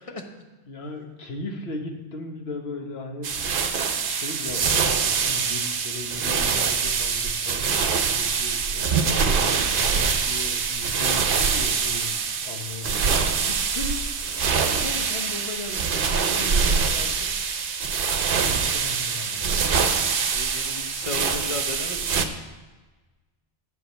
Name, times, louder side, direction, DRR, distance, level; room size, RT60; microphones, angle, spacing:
voice 1, 0.7-17.3 18.1-19.7, left 2 dB, 75° left, 3 dB, 1.3 m, -38 dB
sound 1, 3.2-22.3, right 5 dB, 60° right, 0.8 m, -24 dB
voice 2, 20.3-22.3, left 2 dB, 35° left, 3 dB, 0.9 m, -35 dB
9.0 x 4.8 x 7.0 m, 1.2 s
omnidirectional pair, 1.1 m